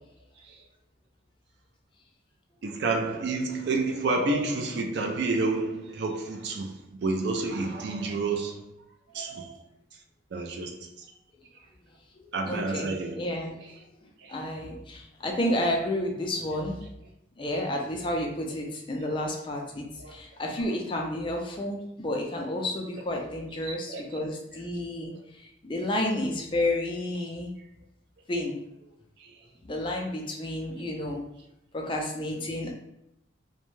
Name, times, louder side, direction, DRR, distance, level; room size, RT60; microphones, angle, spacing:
voice 1, 2.6-6.7 7.0-8.6 9.1-9.6 10.3-11.1 12.3-13.4 14.2-14.4 20.0-20.2 23.6-24.0 29.2-29.3, right 3 dB, 55° right, 0.4 m, -30 dB
voice 2, 12.2-13.5 14.0-16.8 17.4-27.5 28.3-28.6 29.6-31.2 31.7-32.7, left 1 dB, 25° left, 0.3 m, -31 dB
2.5 x 2.1 x 3.1 m
head